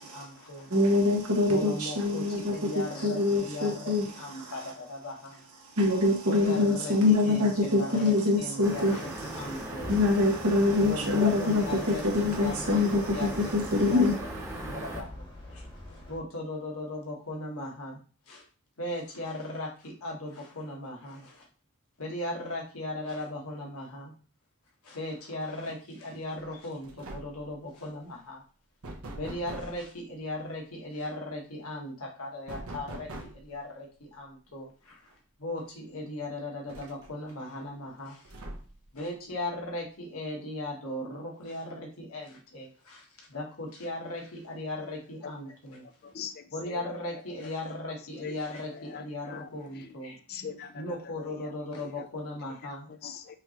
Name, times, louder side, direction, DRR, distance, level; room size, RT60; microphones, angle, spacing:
voice 1, 0.0-0.7 1.5-5.4 6.3-9.9 10.8-12.8 13.1-14.1 14.6-15.6 15.9-18.4 18.8-21.5 22.0-24.1 24.8-28.4 29.2-35.1 35.4-38.3 38.9-45.8 46.5-50.2 50.7-52.9, left 1 dB, 75° left, 0 dB, 1.3 m, -38 dB
voice 2, 0.7-4.7 5.6-9.0 9.3-14.1, left 2 dB, 90° right, -2 dB, 1.5 m, -25 dB
sound 1, 8.6-15.0, right 1 dB, 15° right, 1.0 m, -39 dB
sound 2, 9.1-16.2, left 1 dB, 20° left, 1.0 m, -45 dB
sound 3, 26.4-26.6 26.8-27.5 28.8-29.8 32.5-33.5 35.1-35.2 35.6-35.7 36.7-37.3 38.2-38.9, right 1 dB, 70° right, 0.9 m, -42 dB
voice 3, 46.0-46.4 46.7-46.8 48.2-48.4 48.9-49.5 50.3-50.8 53.0-53.4, left 7 dB, 45° left, 9 dB, 0.4 m, -40 dB
5.6 x 3.0 x 2.9 m, 0.38 s
head